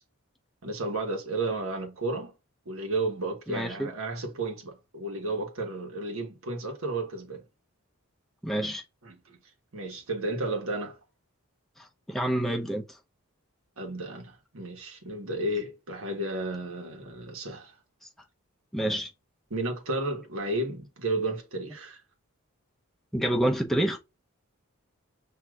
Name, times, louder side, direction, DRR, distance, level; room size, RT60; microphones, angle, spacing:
voice 1, 0.6-2.3 2.7-7.4 9.0-9.4 9.7-11.0 13.8-17.7 19.5-22.0, right 2 dB, 75° right, 1.2 m, -32 dB
voice 2, 3.5-3.9 8.4-8.8 12.1-12.8 18.7-19.1 23.1-24.0, right 1 dB, ahead, 0.6 m, -27 dB
6.2 x 2.7 x 2.3 m
head